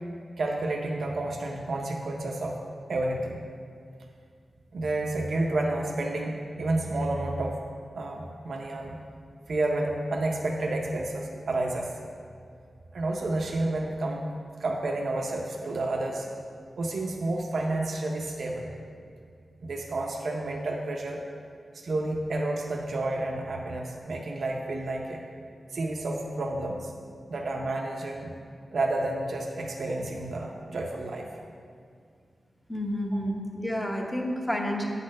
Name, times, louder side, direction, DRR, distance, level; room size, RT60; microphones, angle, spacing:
voice 1, 0.4-2.6 2.9-3.5 4.7-7.6 8.0-9.0 9.5-11.9 12.9-14.3 14.6-16.3 16.8-18.8 19.6-21.2 21.8-25.2 25.7-26.9 27.3-28.3 28.7-31.3, right 2 dB, 65° right, 0 dB, 0.6 m, -30 dB
voice 2, 32.7-34.9, equal, 10° left, 1 dB, 0.8 m, -30 dB
8.7 x 4.2 x 6.3 m, 2.2 s
wide cardioid pair, 160°, 0 cm